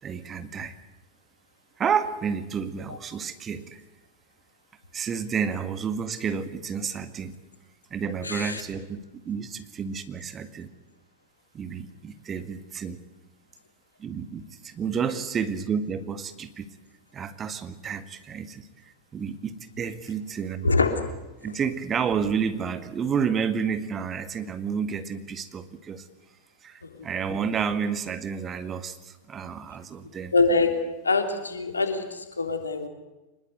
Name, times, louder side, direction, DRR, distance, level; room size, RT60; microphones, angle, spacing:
voice 1, 0.0-0.7 1.8-3.8 4.9-7.4 7.9-10.7 11.5-13.0 14.0-16.7 17.1-20.7 21.4-26.1 26.6-30.3, right 6 dB, 25° right, 10 dB, 1.9 m, -30 dB
voice 2, 8.2-8.6 20.6-21.0 30.3-30.7 31.0-32.9, left 3 dB, 75° left, 6 dB, 3.2 m, -24 dB
25.0 x 21.0 x 8.2 m, 1.0 s
figure-of-eight pair, 90°, 0 cm